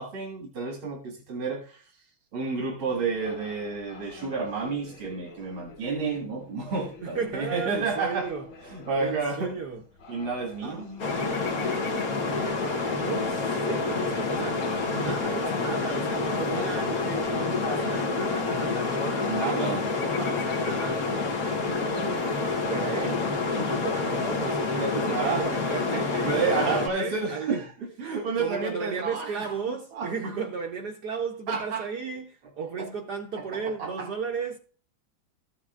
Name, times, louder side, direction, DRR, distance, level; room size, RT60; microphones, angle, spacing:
voice 1, 0.0-1.8 2.3-8.3 8.7-9.6 10.1-10.9 11.2-11.4 15.6-15.7 19.3-19.8 23.6-23.7 24.7-25.5 25.9-26.0 26.2-27.7 28.0-30.1 31.5-31.9 32.8-32.9 33.8-34.1, right 4 dB, 90° right, 2.7 m, -30 dB
sound 1, 2.8-17.4, left 4 dB, 90° left, 2.3 m, -49 dB
voice 2, 7.0-8.4 9.0-9.8 10.6-11.5 12.1-21.1 21.9-22.4 22.7-23.3 23.6-27.6 28.4-34.6, right 5 dB, 60° right, 1.3 m, -35 dB
sound 2, 11.0-26.9, left 3 dB, 50° left, 1.5 m, -28 dB
14.5 x 7.3 x 2.4 m
omnidirectional pair, 2.2 m